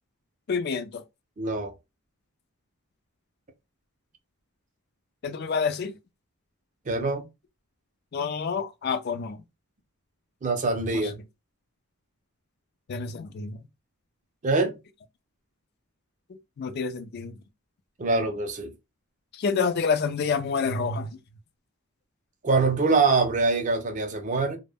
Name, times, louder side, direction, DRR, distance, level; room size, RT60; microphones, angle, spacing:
voice 1, 0.5-1.0 5.2-5.9 8.1-9.4 10.9-11.1 12.9-13.6 16.6-17.3 19.4-21.1, left 5 dB, 45° left, 0.3 m, -28 dB
voice 2, 1.4-1.7 6.9-7.2 10.4-11.2 14.4-14.8 18.0-18.7 22.4-24.6, right 3 dB, 35° right, 0.4 m, -24 dB
2.1 x 2.0 x 3.3 m
head